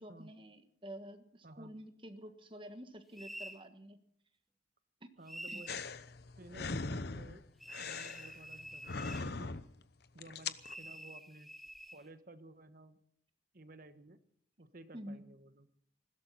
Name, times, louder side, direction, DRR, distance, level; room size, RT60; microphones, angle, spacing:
voice 1, 0.0-4.0 5.0-5.1 5.5-5.6 14.9-15.2, equal, 25° right, 8 dB, 1.5 m, -49 dB
voice 2, 1.4-1.7 5.2-5.8 6.4-7.5 7.8-9.5 10.1-11.5 11.9-13.0 13.5-14.2 14.6-15.7, right 2 dB, 50° right, 10 dB, 1.3 m, -55 dB
sound 1, 3.2-3.6 5.3-5.9 7.6-9.3 10.6-12.0, equal, ahead, 1.1 m, -48 dB
sound 2, 5.7-9.8 10.2-10.7, left 4 dB, 60° left, 0.8 m, -41 dB
20.5 x 16.5 x 4.2 m, 0.65 s
head